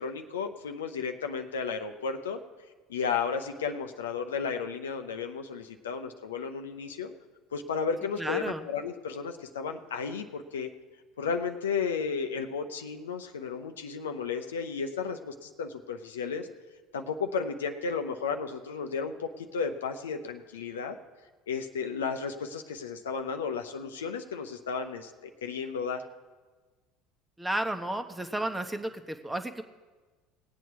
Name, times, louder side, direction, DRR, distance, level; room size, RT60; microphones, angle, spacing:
voice 1, 0.0-2.4 2.9-7.1 7.5-10.7 11.2-16.5 16.9-21.0 21.5-26.0, left 5 dB, 85° left, 6 dB, 0.7 m, -33 dB
voice 2, 8.2-8.7 27.4-29.6, right 1 dB, 10° right, 8 dB, 1.0 m, -32 dB
19.0 x 8.3 x 4.7 m, 1.3 s
hypercardioid pair, 70°, 0 cm